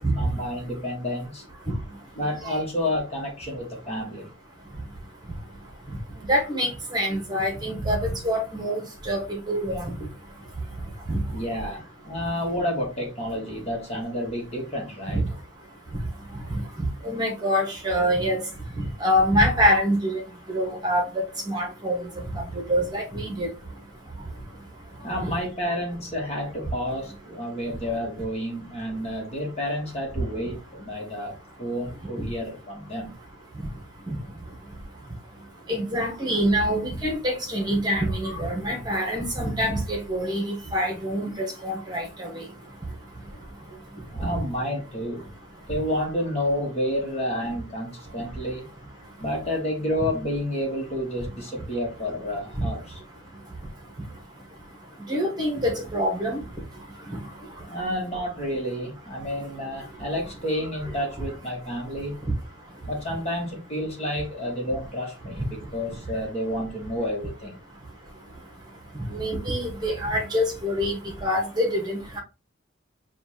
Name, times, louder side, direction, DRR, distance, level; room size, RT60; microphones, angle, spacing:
voice 1, 0.2-1.4 2.1-4.3 11.3-15.2 25.0-31.3 31.6-33.1 44.1-45.2 45.7-48.7 49.2-53.0 57.7-62.2 62.9-67.5, equal, 30° left, 1.3 m, -30 dB
voice 2, 6.3-9.2 9.5-9.9 11.1-11.2 15.1-15.2 17.0-18.4 19.0-20.2 20.5-21.0 21.5-22.0 22.7-23.5 34.1-34.2 35.7-42.4 52.6-52.7 55.1-56.4 69.1-72.2, equal, 20° right, 1.3 m, -25 dB
6.9 x 2.5 x 2.8 m
head